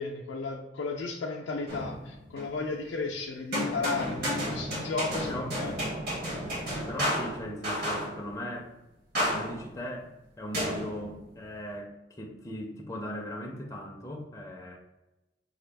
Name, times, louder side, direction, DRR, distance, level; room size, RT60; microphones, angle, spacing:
voice 1, 0.0-5.7, left 4 dB, 75° left, -1 dB, 0.4 m, -34 dB
sound 1, 1.7-2.6 3.5-8.3 9.2-9.8 10.5-11.4, equal, 55° right, 1.1 m, -32 dB
voice 2, 6.7-8.7 9.3-14.8, left 1 dB, 15° left, 0 dB, 0.4 m, -39 dB
4.2 x 2.2 x 3.3 m, 0.98 s
head